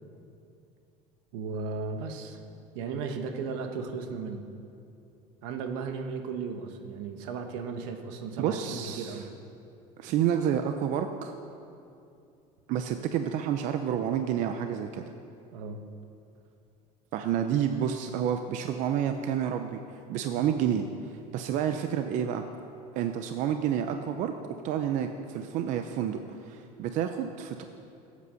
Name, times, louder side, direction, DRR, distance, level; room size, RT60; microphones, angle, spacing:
voice 1, 1.3-2.4 2.7-4.4 5.4-9.3 15.5-15.8, right 5 dB, 80° right, 5 dB, 1.4 m, -35 dB
voice 2, 8.4-9.2 10.0-11.3 12.7-15.0 17.1-19.8 20.1-20.8 21.3-22.4 22.9-24.3 24.6-27.6, right 9 dB, 50° right, 7 dB, 0.7 m, -29 dB
16.0 x 8.4 x 6.4 m, 2.6 s
cardioid pair, 155°, 16 cm